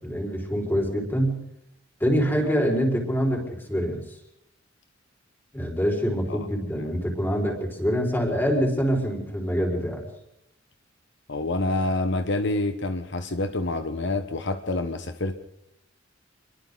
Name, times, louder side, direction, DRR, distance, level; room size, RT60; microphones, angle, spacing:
voice 1, 0.0-1.4 2.0-4.0 5.5-10.0, equal, 10° left, 0 dB, 5.3 m, -25 dB
voice 2, 11.3-15.4, left 2 dB, 65° left, 8 dB, 1.2 m, -27 dB
28.5 x 23.0 x 4.1 m, 0.80 s
head